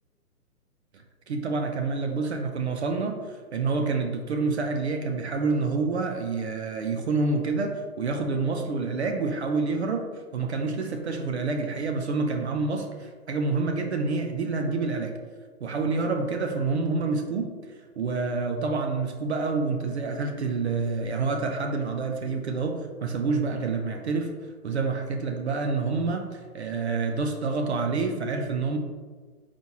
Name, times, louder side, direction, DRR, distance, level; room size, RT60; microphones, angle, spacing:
voice 1, 0.9-15.1 15.6-17.5 18.0-24.3 24.6-28.8, right 4 dB, 45° right, 4 dB, 0.5 m, -28 dB
4.5 x 4.2 x 2.8 m, 1.5 s
hypercardioid pair, 140°, 47 cm